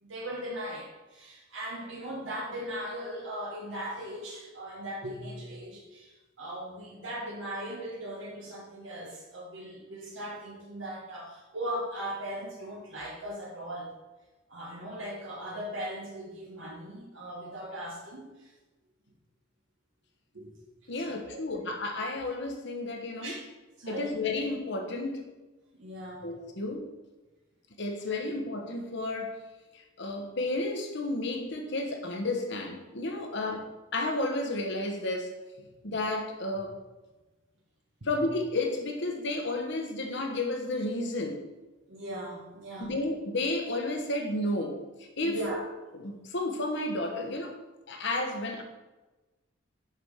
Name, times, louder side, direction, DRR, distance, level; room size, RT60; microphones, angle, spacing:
voice 1, 0.0-14.0 14.5-18.5 20.3-20.6 21.1-21.7 23.2-23.5 23.8-24.1 25.7-26.3 33.3-33.5 38.0-38.1 41.9-42.9 45.2-45.6, right 1 dB, 60° right, -3 dB, 1.3 m, -39 dB
voice 2, 20.9-23.4 23.9-25.2 26.2-26.9 27.8-29.4 29.7-33.6 33.9-35.3 35.8-36.8 38.0-41.4 42.8-45.4 45.9-47.5 47.9-48.6, left 2 dB, 60° left, 3 dB, 1.3 m, -32 dB
6.0 x 5.3 x 6.3 m, 1.1 s
head